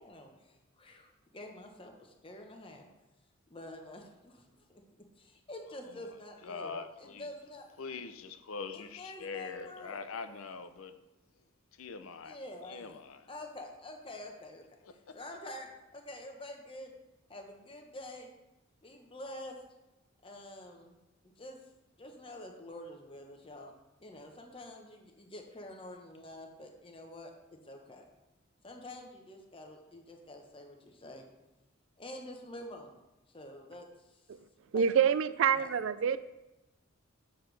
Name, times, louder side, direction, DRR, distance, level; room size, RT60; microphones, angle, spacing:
voice 1, 0.0-2.9 3.5-4.4 4.7-4.8 5.2-7.7 8.7-10.0 12.2-13.0 13.3-14.6 15.1-16.9 17.3-18.3 18.8-19.6 20.2-20.9 21.2-21.6 22.0-23.7 24.0-27.3 27.6-28.0 28.6-31.2 32.0-32.9 33.3-34.2 34.7-34.9 35.6-35.7, left 1 dB, 25° left, 1.0 m, -47 dB
voice 2, 5.8-6.2 6.4-7.3 7.8-11.0 11.7-12.4 12.6-13.3 14.8-15.2, left 5 dB, 75° left, 0.6 m, -43 dB
voice 3, 34.7-36.2, right 7 dB, 65° right, 0.3 m, -27 dB
7.9 x 6.7 x 3.3 m
head